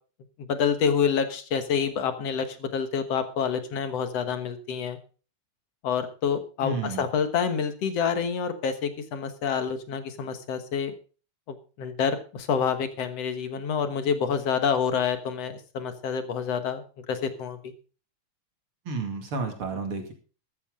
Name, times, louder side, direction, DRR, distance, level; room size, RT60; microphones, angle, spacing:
voice 1, 0.4-5.0 5.8-10.9 11.5-17.7, left 6 dB, 60° left, 8 dB, 2.2 m, -28 dB
voice 2, 6.6-7.1 18.9-20.1, right 4 dB, 45° right, 4 dB, 2.9 m, -31 dB
14.0 x 13.5 x 3.7 m, 0.37 s
omnidirectional pair, 3.7 m